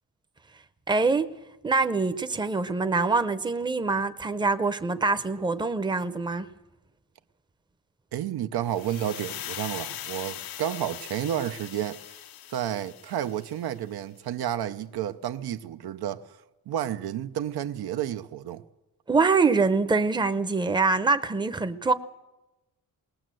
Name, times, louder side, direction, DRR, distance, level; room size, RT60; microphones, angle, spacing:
voice 1, 0.9-1.3 1.6-6.5 19.1-21.9, right 4 dB, 10° right, 0.7 m, -24 dB
voice 2, 8.1-12.0 12.5-16.4 16.7-18.6, right 11 dB, 80° right, 0.9 m, -31 dB
sound 1, 8.7-13.7, left 12 dB, 70° left, 0.7 m, -40 dB
20.5 x 19.5 x 7.7 m
wide cardioid pair, 165°, 37 cm